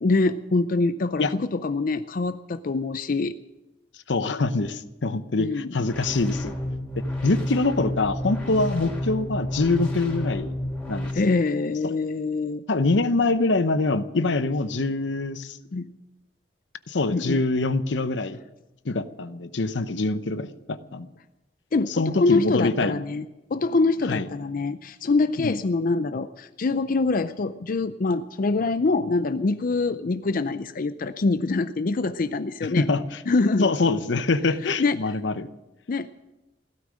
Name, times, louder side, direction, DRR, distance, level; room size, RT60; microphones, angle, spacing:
voice 1, 0.0-3.4 5.4-5.7 11.1-12.6 15.7-15.9 17.1-17.4 21.7-23.3 23.5-32.9 33.3-33.7 34.6-35.0 35.9-36.1, left 3 dB, 50° left, 12 dB, 0.5 m, -24 dB
voice 2, 4.1-6.5 7.2-10.5 10.9-11.4 11.8-12.0 12.7-15.6 16.9-18.4 18.8-21.1 21.9-22.9 24.1-24.3 25.4-25.6 32.6-33.0 33.6-35.5, left 3 dB, 80° left, 13 dB, 0.8 m, -24 dB
sound 1, 5.8-11.1, left 1 dB, 10° left, 3.7 m, -30 dB
16.5 x 13.0 x 6.4 m, 1.0 s
head